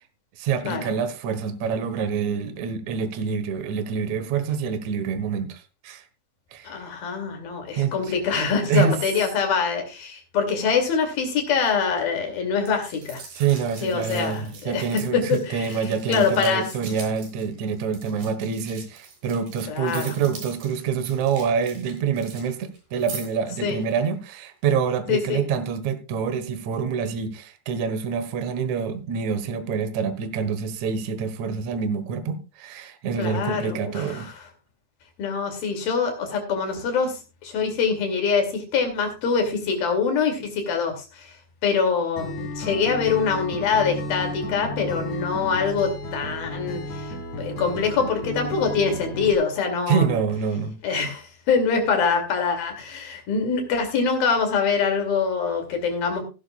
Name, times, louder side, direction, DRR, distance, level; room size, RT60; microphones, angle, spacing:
voice 1, 0.4-6.0 6.5-6.7 7.7-8.1 8.7-9.0 13.3-34.3 49.9-50.8, right 6 dB, 70° right, 1.7 m, -26 dB
voice 2, 6.7-13.2 13.8-14.8 15.1-15.7 16.1-16.7 19.7-20.1 23.6-23.8 25.1-25.4 33.2-34.3 35.2-41.3 41.6-47.1 47.4-50.2 50.8-56.2, left 5 dB, 60° left, 4.0 m, -24 dB
sound 1, 12.7-22.5 22.7-23.4 23.8-24.0, right 5 dB, 50° right, 5.0 m, -42 dB
Acoustic guitar, 42.2-49.3, left 1 dB, 40° left, 5.2 m, -33 dB
16.5 x 11.5 x 2.4 m
omnidirectional pair, 5.2 m